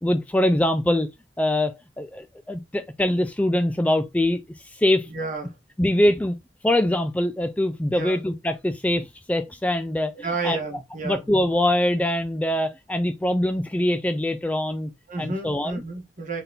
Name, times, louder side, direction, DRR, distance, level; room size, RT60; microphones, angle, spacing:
voice 1, 0.0-1.1 1.4-4.4 4.7-5.1 5.8-6.4 6.6-10.1 10.4-10.6 11.0-14.9 15.2-15.8, left 1 dB, 10° left, 0.3 m, -23 dB
voice 2, 5.1-5.5 7.9-8.2 10.2-11.2 15.1-16.4, right 3 dB, 45° right, 1.2 m, -31 dB
3.9 x 3.5 x 2.8 m
head